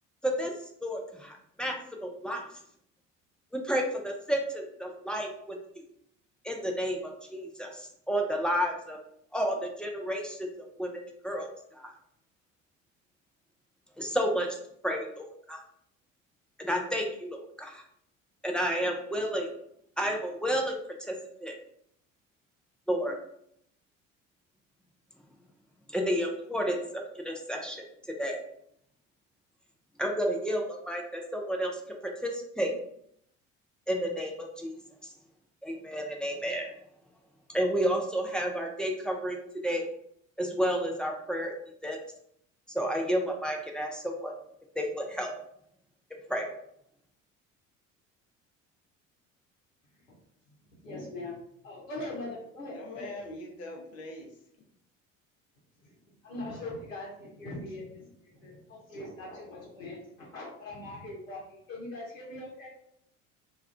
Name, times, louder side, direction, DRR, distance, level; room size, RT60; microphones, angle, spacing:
voice 1, 0.2-0.5 0.8-2.4 3.5-5.6 6.4-9.0 9.3-10.5 10.8-10.9 11.2-11.5 11.7-11.9 14.0-14.6 14.8-15.6 16.6-17.8 18.4-19.5 20.0-21.5 22.9-23.2 25.9-27.9 28.2-28.4 30.0-32.7 33.9-34.7 35.0-35.1 35.6-36.7 37.5-39.4 39.6-39.9 40.4-41.5 41.8-42.0 42.7-44.3 44.8-45.3 46.3-46.5, equal, 5° left, 0 dB, 0.3 m, -31 dB
voice 2, 50.8-53.1 55.8-56.0 56.2-62.7, left 2 dB, 80° left, -5 dB, 0.8 m, -41 dB
voice 3, 52.7-54.3, left 1 dB, 40° left, 2 dB, 0.8 m, -42 dB
2.4 x 2.3 x 3.2 m, 0.71 s
figure-of-eight pair, 60°, 39 cm